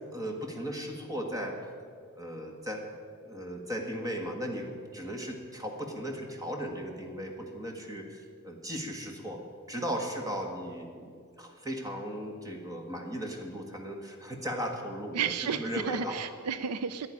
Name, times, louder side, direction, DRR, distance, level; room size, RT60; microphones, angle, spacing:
voice 1, 0.1-1.6 2.1-2.8 3.2-9.4 9.7-16.2, equal, 15° right, 2 dB, 1.6 m, -37 dB
voice 2, 15.1-17.1, right 7 dB, 90° right, 12 dB, 0.5 m, -32 dB
11.0 x 9.6 x 9.9 m, 2.3 s
head